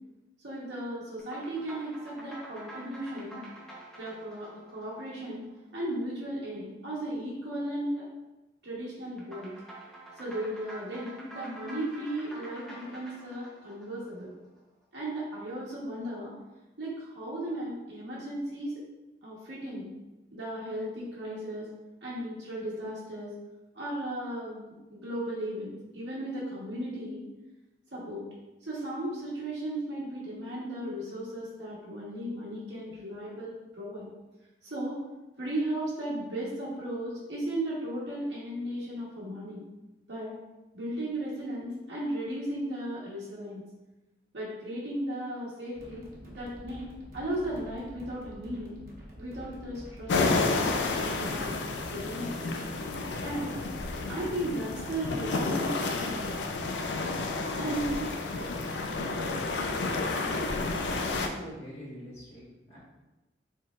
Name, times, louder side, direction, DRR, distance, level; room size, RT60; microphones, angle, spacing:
voice 1, 0.4-3.5 4.0-5.4 5.7-8.1 8.6-9.5 10.2-14.3 14.9-16.3 16.8-18.7 19.2-19.9 20.3-21.7 22.0-23.3 23.7-24.6 24.9-27.3 27.9-28.2 28.6-34.1 34.6-35.0 35.4-39.6 40.1-40.3 40.7-43.6 44.3-46.9 47.1-48.8 49.2-51.5 51.9-52.5 53.2-53.6 54.1-56.4 57.6-58.0 58.4-58.5 59.8-59.9, right 1 dB, 80° right, -8 dB, 1.0 m, -36 dB
sound 1, 1.2-5.8 9.2-14.6, right 1 dB, 5° left, 0.7 m, -48 dB
sound 2, 45.7-51.6, equal, 50° right, 1.0 m, -47 dB
sound 3, 50.1-61.3, left 3 dB, 85° left, 0.4 m, -31 dB
voice 2, 60.8-62.8, equal, 35° left, -11 dB, 1.3 m, -44 dB
4.3 x 3.8 x 2.4 m, 1.0 s
head